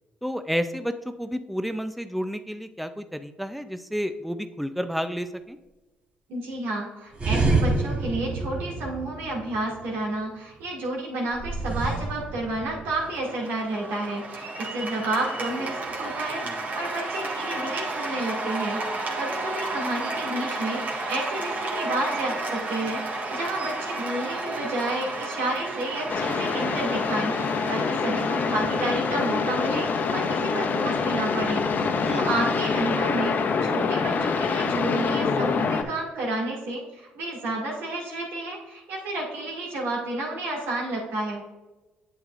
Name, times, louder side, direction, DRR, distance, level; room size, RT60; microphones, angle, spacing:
voice 1, 0.2-5.6 16.4-16.6 32.1-32.2, equal, ahead, 9 dB, 0.5 m, -31 dB
voice 2, 6.3-27.3 27.7-31.7 32.1-41.4, right 2 dB, 80° right, -2 dB, 2.2 m, -31 dB
sound 1, 7.1-9.8 11.3-13.1, right 3 dB, 30° right, 1.3 m, -27 dB
Cheering / Applause, 13.0-32.2, right 2 dB, 45° right, 1.6 m, -33 dB
sound 2, 26.1-35.8, left 5 dB, 50° left, 0.9 m, -25 dB
8.1 x 7.9 x 2.5 m, 1.1 s
supercardioid pair, 60°, 4 cm